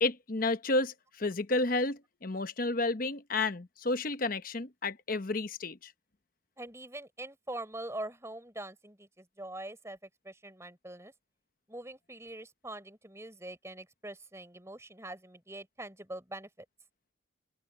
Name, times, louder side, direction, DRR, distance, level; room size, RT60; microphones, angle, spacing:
voice 1, 0.0-5.9, left 2 dB, 45° left, 1.0 m, -31 dB
voice 2, 6.6-10.0 10.2-11.1 11.7-16.5, right 1 dB, 15° right, 4.4 m, -43 dB
open air
head